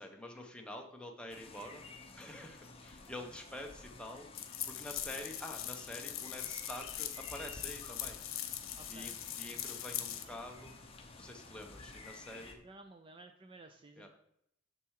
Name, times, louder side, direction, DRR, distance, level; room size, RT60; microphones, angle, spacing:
voice 1, 0.0-1.8 2.2-4.3 4.7-8.2 8.9-10.8 11.2-12.6 14.0-14.1, left 1 dB, 5° left, 2 dB, 0.9 m, -47 dB
sound 1, 1.3-12.5, left 3 dB, 30° left, 0.9 m, -52 dB
sound 2, 4.4-10.2, left 11 dB, 80° left, 0.9 m, -41 dB
voice 2, 8.7-9.2 12.6-14.1, right 2 dB, 25° right, 6 dB, 0.5 m, -54 dB
6.9 x 6.8 x 4.8 m, 0.76 s
head